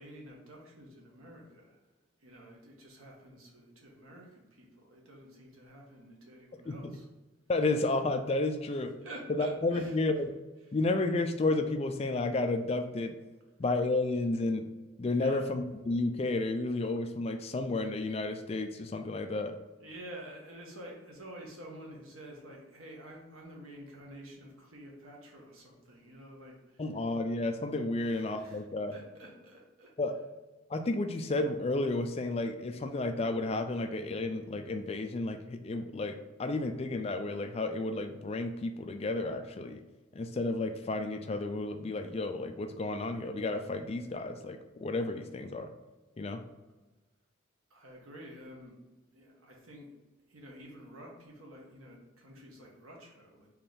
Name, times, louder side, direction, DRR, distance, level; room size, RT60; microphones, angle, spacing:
voice 1, 0.0-1.8 2.2-7.1 8.6-10.0 10.6-10.7 15.2-15.5 19.8-26.8 28.0-29.9 47.7-48.8 49.1-49.9 50.3-53.5, right 1 dB, 90° right, -1 dB, 1.3 m, -49 dB
voice 2, 7.5-8.9 9.3-10.3 10.7-13.1 13.6-14.7 15.0-19.6 26.8-28.9 30.0-30.1 30.7-39.8 40.1-45.7 46.2-46.4, left 2 dB, 30° left, 7 dB, 0.3 m, -32 dB
4.3 x 3.2 x 3.8 m, 1.1 s
head